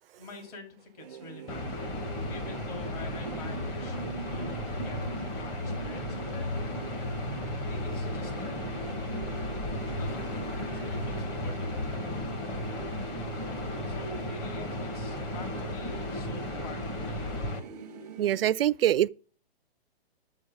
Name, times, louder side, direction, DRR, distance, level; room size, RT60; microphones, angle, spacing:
voice 1, 0.2-4.0 4.3-6.5 7.7-8.6 10.0-12.0 13.8-17.3, left 3 dB, 35° left, 2.9 m, -46 dB
sound 1, 1.0-18.5, right 5 dB, 5° right, 0.5 m, -44 dB
sound 2, 1.5-17.6, left 1 dB, 15° left, 1.1 m, -34 dB
voice 2, 18.2-19.1, right 12 dB, 65° right, 0.4 m, -24 dB
10.5 x 7.8 x 5.1 m
hypercardioid pair, 160°, 31 cm